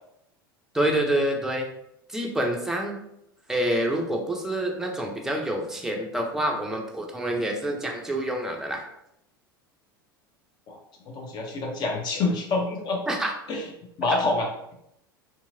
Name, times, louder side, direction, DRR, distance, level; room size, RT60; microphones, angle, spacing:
voice 1, 0.7-1.7 2.1-3.0 3.5-8.9 13.1-13.3 14.0-14.2, right 1 dB, 5° right, 1 dB, 0.5 m, -27 dB
voice 2, 11.0-13.0 13.5-13.7 14.0-14.5, left 3 dB, 35° left, 1 dB, 0.7 m, -27 dB
2.8 x 2.6 x 2.6 m, 0.78 s
figure-of-eight pair, 80°, 12 cm